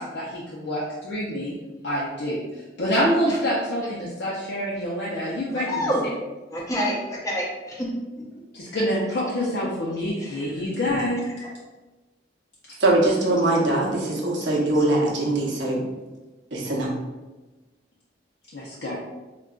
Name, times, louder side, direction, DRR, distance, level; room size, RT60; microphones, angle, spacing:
voice 1, 0.0-1.5 1.8-2.4 2.8-5.9 8.5-11.2 18.5-18.9, equal, 70° left, -6 dB, 0.5 m, -26 dB
voice 2, 5.5-6.0 6.5-7.9 10.2-10.5 10.8-11.1 11.4-11.5 14.7-14.8, equal, 20° left, -3 dB, 0.6 m, -28 dB
voice 3, 12.8-15.8 16.5-16.9, right 2 dB, 80° right, -3 dB, 0.7 m, -22 dB
3.7 x 2.3 x 2.3 m, 1.1 s
head